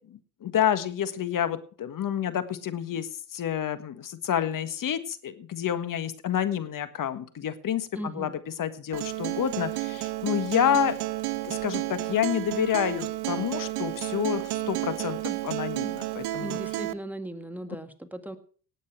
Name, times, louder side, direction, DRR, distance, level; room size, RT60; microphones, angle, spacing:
voice 1, 0.1-8.3 8.6-10.9 11.4-16.6, left 9 dB, 40° left, 12 dB, 1.6 m, -29 dB
voice 2, 7.9-8.3 15.3-15.4 16.4-18.4, right 1 dB, 5° right, 7 dB, 1.9 m, -37 dB
Acoustic guitar, 8.9-16.9, right 16 dB, 55° right, 0.9 m, -31 dB
18.0 x 8.4 x 4.7 m, 0.43 s
hypercardioid pair, 70°, 48 cm